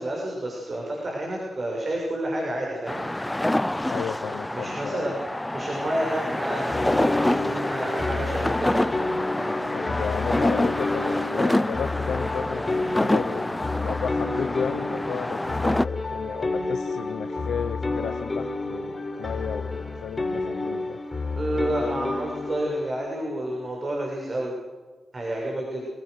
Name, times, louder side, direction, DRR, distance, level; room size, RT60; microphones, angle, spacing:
voice 1, 0.0-3.1 4.5-5.2 5.5-8.8 21.4-24.5 25.1-25.9, right 1 dB, 50° right, -1 dB, 6.9 m, -30 dB
sound 1, 2.9-15.9, left 1 dB, 15° left, 0.6 m, -27 dB
voice 2, 3.9-5.2 9.7-21.0, left 7 dB, 85° left, 9 dB, 0.8 m, -33 dB
sound 2, 6.7-22.9, left 3 dB, 30° left, 4.5 m, -30 dB
28.5 x 17.0 x 6.7 m, 1.4 s
cardioid pair, 55°, 0 cm